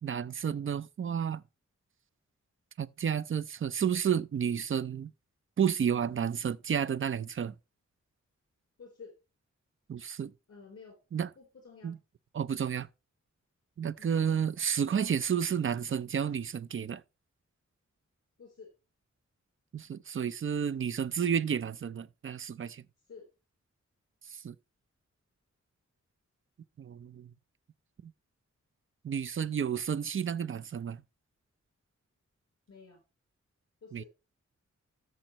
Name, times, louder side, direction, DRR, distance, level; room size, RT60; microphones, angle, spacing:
voice 1, 0.0-1.4 2.8-5.1 5.6-7.6 9.9-10.3 11.1-11.3 11.8-12.0 12.3-12.9 13.8-17.0 19.7-22.8 24.3-24.6 26.8-27.3 28.0-28.1 29.0-31.0 33.9-34.0, right 8 dB, 45° right, 0.4 m, -31 dB
voice 2, 8.8-9.1 10.5-11.0 11.4-11.9 14.0-14.1 18.4-18.7 23.1-23.3 32.7-33.0 33.8-34.1, left 5 dB, 55° left, 3.7 m, -51 dB
13.0 x 6.4 x 3.0 m
wide cardioid pair, 145°, 29 cm